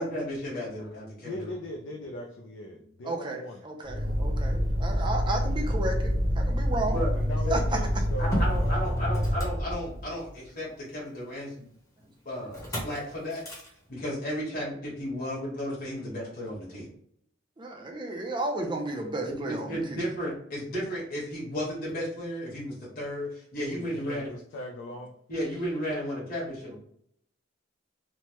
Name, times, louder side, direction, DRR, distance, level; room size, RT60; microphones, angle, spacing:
voice 1, 0.0-1.5 6.9-7.1 7.4-7.6 8.2-11.7 12.2-13.4 13.9-16.9 19.3-24.3 25.3-26.8, equal, 50° left, -6 dB, 1.3 m, -34 dB
voice 2, 1.2-4.4 7.1-9.1 23.6-25.1, left 1 dB, 75° left, 2 dB, 0.4 m, -40 dB
voice 3, 3.0-7.0 7.5-7.6 17.6-20.0, right 2 dB, 25° right, 2 dB, 0.4 m, -33 dB
Motor vehicle (road), 3.8-10.3 12.5-13.0 13.3-13.7, equal, 15° left, 0.8 m, -27 dB
3.1 x 2.1 x 2.9 m, 0.66 s
head